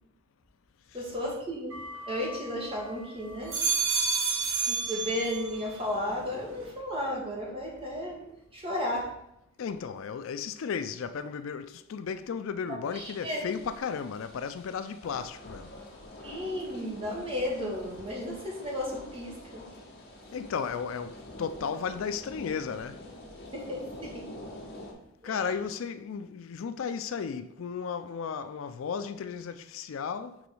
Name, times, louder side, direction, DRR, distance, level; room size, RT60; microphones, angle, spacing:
voice 1, 0.9-1.8 2.1-3.6 4.6-8.3 8.5-9.1 12.7-13.4 16.2-19.6 23.5-24.3 25.2-25.4, left 1 dB, 25° right, 1.7 m, -34 dB
sound 1, 1.7-2.8 3.3-5.7 6.1-6.7, right 5 dB, 70° right, 1.4 m, -31 dB
voice 2, 9.6-15.7 20.3-23.1 25.2-30.4, left 6 dB, 65° left, 0.4 m, -34 dB
sound 2, 12.9-24.9, left 1 dB, 50° left, 1.7 m, -47 dB
4.8 x 4.1 x 5.3 m
head